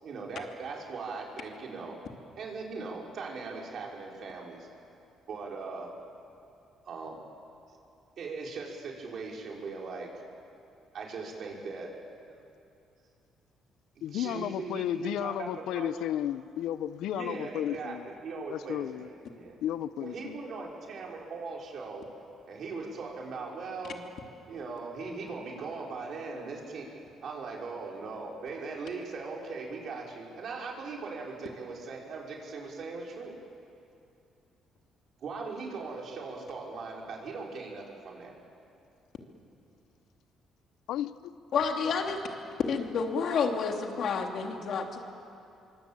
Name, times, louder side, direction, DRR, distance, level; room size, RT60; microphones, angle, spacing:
voice 1, 0.0-2.0 2.4-4.7 5.3-5.9 6.8-7.2 8.2-10.1 10.9-11.9 12.2-12.4 14.1-16.0 17.1-19.6 20.0-22.0 22.5-24.0 24.5-26.9 27.2-33.4 35.2-38.4, right 4 dB, 55° right, -1 dB, 5.4 m, -39 dB
voice 2, 14.0-18.1 18.5-19.1 19.6-20.4 40.9-41.4, left 11 dB, 80° left, 15 dB, 0.7 m, -33 dB
voice 3, 41.5-42.2 42.7-45.0, left 5 dB, 60° left, 3 dB, 2.9 m, -29 dB
25.0 x 24.0 x 9.0 m, 2.6 s
cardioid pair, 105°, 0 cm